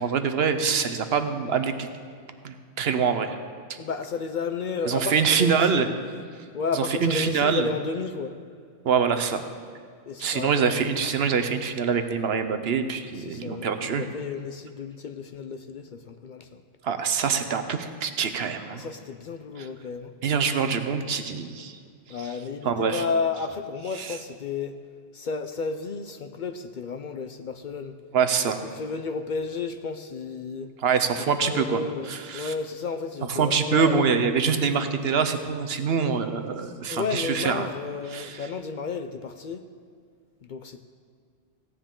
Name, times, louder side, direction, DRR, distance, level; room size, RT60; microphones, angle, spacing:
voice 1, 0.0-1.9 2.4-3.4 4.9-5.9 6.8-7.7 8.8-9.4 10.2-14.0 16.8-18.8 19.6-19.7 20.2-21.8 22.6-23.0 24.0-24.2 28.1-28.6 30.8-31.8 32.1-32.5 33.3-37.7 38.1-38.5, right 6 dB, 70° right, 8 dB, 1.0 m, -25 dB
voice 2, 3.8-5.9 6.5-8.3 10.1-10.8 13.1-16.6 18.7-20.1 22.1-24.8 25.1-27.9 28.4-30.7 31.2-34.1 36.9-39.6 40.4-40.8, left 5 dB, 55° left, 8 dB, 0.6 m, -32 dB
16.0 x 9.7 x 3.8 m, 2.2 s
omnidirectional pair, 1.1 m